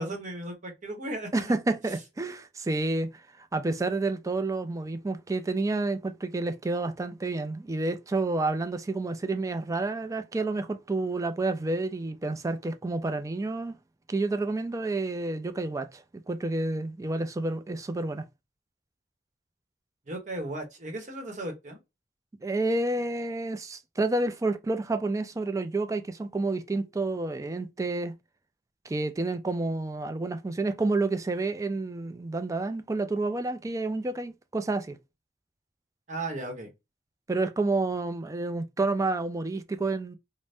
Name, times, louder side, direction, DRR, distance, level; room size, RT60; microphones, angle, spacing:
voice 1, 0.0-1.5 20.1-21.8 36.1-36.7, right 1 dB, 45° right, 0.9 m, -36 dB
voice 2, 1.3-13.8 14.1-18.3 22.4-28.1 28.8-35.0 37.3-40.2, right 2 dB, 20° right, 0.3 m, -29 dB
3.3 x 2.1 x 2.6 m
head